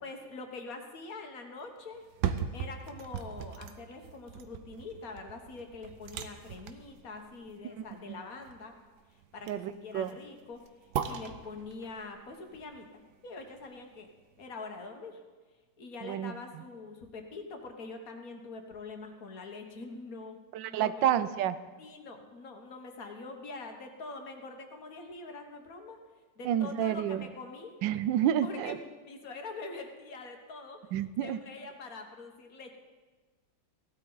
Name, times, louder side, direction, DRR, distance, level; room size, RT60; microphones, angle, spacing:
voice 1, 0.0-2.0 2.5-8.7 9.3-10.6 11.0-14.1 14.4-15.2 15.8-20.4 20.7-21.0 21.8-26.0 26.4-27.8 28.4-30.8 31.2-32.7, left 3 dB, 55° left, 4 dB, 1.6 m, -44 dB
sound 1, 1.9-14.0 14.4-14.5, right 8 dB, 70° right, 1.2 m, -40 dB
voice 2, 9.5-10.1 16.0-16.3 20.5-21.6 26.4-27.2 27.8-28.8 30.9-31.4, right 10 dB, 90° right, 14 dB, 1.3 m, -29 dB
16.5 x 12.0 x 3.9 m, 1.4 s
omnidirectional pair, 1.9 m